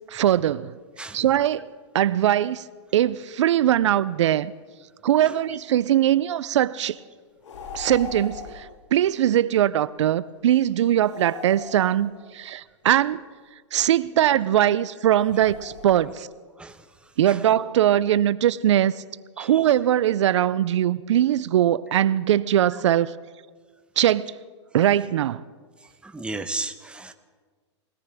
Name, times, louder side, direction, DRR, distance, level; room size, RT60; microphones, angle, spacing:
voice 1, 0.1-0.8 1.1-1.7 1.9-2.6 2.9-4.5 5.0-7.0 7.7-13.2 13.7-16.3 17.2-19.0 19.4-23.1 24.0-24.4 24.7-25.4, right 11 dB, 75° right, 18 dB, 0.5 m, -21 dB
sound 1, 7.4-8.8 11.0-12.5 15.1-16.3, left 5 dB, 75° left, 2.0 m, -39 dB
voice 2, 26.0-27.1, right 2 dB, 5° right, 9 dB, 0.9 m, -34 dB
22.5 x 17.5 x 3.4 m, 1.5 s
hypercardioid pair, 115°, 15 cm